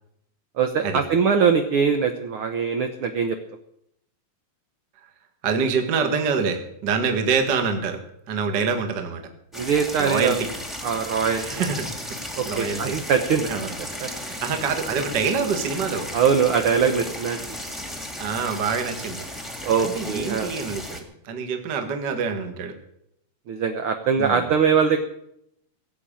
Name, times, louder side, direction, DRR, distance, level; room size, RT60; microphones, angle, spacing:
voice 1, 0.6-3.4 9.5-10.4 10.8-11.4 12.3-13.5 14.0-14.1 16.1-17.4 19.6-20.5 23.5-25.0, right 6 dB, 65° right, 6 dB, 1.4 m, -22 dB
voice 2, 5.4-8.0 8.3-9.2 10.0-10.5 11.3-12.2 12.5-13.0 13.5-16.1 18.2-19.3 19.8-22.7 24.2-24.5, right 5 dB, 40° right, 6 dB, 1.9 m, -26 dB
sound 1, 9.5-21.0, left 1 dB, ahead, 1.6 m, -35 dB
17.0 x 7.8 x 8.9 m, 0.76 s
omnidirectional pair, 3.6 m